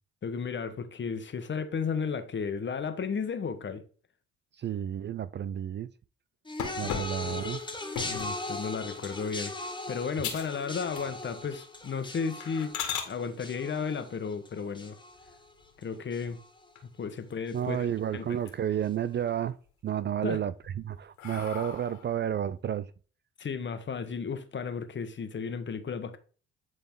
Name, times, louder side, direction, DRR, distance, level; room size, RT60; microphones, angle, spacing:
voice 1, 0.2-3.8 6.8-7.0 8.0-9.5 9.9-12.7 13.0-15.0 15.8-16.4 17.0-17.9 18.1-18.3 20.2-20.4 23.4-26.2, left 6 dB, 40° left, 1.3 m, -34 dB
voice 2, 4.6-5.9 6.8-7.7 17.5-19.6 19.8-22.9, right 9 dB, 35° right, 0.4 m, -31 dB
sound 1, 6.5-15.8 16.1-16.6 17.5-17.6, left 2 dB, 15° left, 1.4 m, -39 dB
sound 2, 6.6-8.4 9.0-9.3 9.7-9.8 10.2-10.6 10.9-11.4 11.8-11.9 12.4-13.1 15.1-15.8 16.3-16.4 16.8-16.9 17.1-17.9 18.3-18.9 19.3-19.9 20.5-22.2, left 8 dB, 80° left, 2.1 m, -38 dB
10.5 x 4.0 x 3.7 m
supercardioid pair, 80°, 30 cm